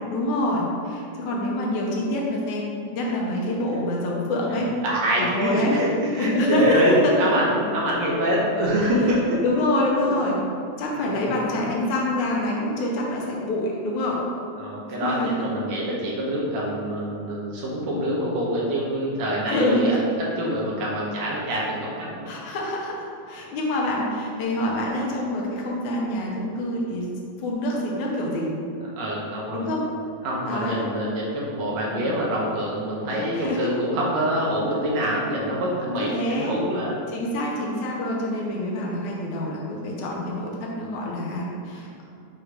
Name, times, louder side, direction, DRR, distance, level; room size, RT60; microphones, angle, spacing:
voice 1, 0.1-4.7 5.2-5.7 6.2-7.1 9.4-10.3 10.8-14.2 15.0-15.3 19.5-20.0 22.3-27.1 27.4-28.5 29.5-29.9 30.4-30.8 31.8-32.1 33.1-33.7 36.0-36.6 37.1-42.0, left 1 dB, 75° left, -2 dB, 2.2 m, -26 dB
voice 2, 4.5-9.6 10.1-10.2 10.9-11.4 14.6-22.3 29.0-29.7 30.2-37.0, equal, 70° right, -4 dB, 2.0 m, -25 dB
6.3 x 3.2 x 4.9 m, 2.5 s
omnidirectional pair, 3.5 m